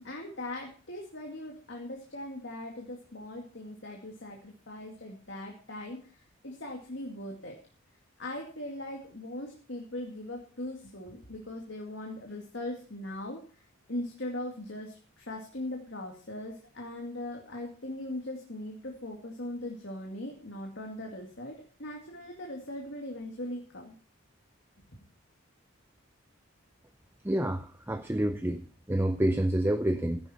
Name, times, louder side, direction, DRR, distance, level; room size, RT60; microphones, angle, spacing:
voice 1, 0.0-7.6 8.2-24.0, left 1 dB, 55° left, 0 dB, 2.3 m, -40 dB
voice 2, 27.2-28.6 28.9-30.2, right 1 dB, 10° right, 9 dB, 0.5 m, -28 dB
15.0 x 10.5 x 4.4 m, 0.40 s
head